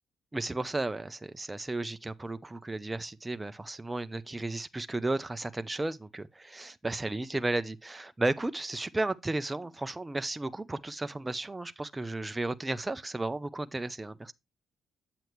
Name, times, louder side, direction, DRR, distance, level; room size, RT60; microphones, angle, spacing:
voice 1, 0.3-14.3, right 2 dB, 15° right, 0.7 m, -34 dB
8.9 x 7.9 x 3.0 m
cardioid pair, 90°, 0 cm